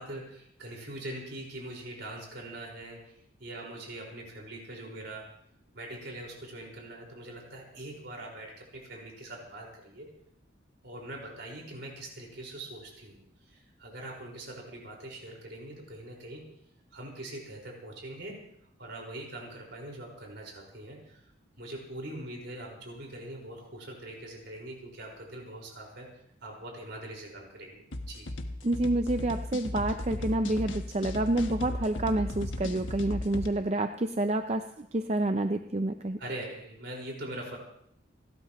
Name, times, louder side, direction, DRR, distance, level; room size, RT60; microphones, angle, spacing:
voice 1, 0.0-5.3 5.7-10.1 10.8-16.4 16.9-18.4 18.8-21.2 21.6-26.1 26.4-28.3 36.2-37.6, right 1 dB, 60° right, -1 dB, 5.1 m, -42 dB
sound 1, 27.9-33.5, left 1 dB, 75° left, 1.3 m, -36 dB
voice 2, 28.6-36.2, right 1 dB, 35° right, 7 dB, 0.6 m, -28 dB
29.5 x 12.5 x 3.1 m, 0.71 s
head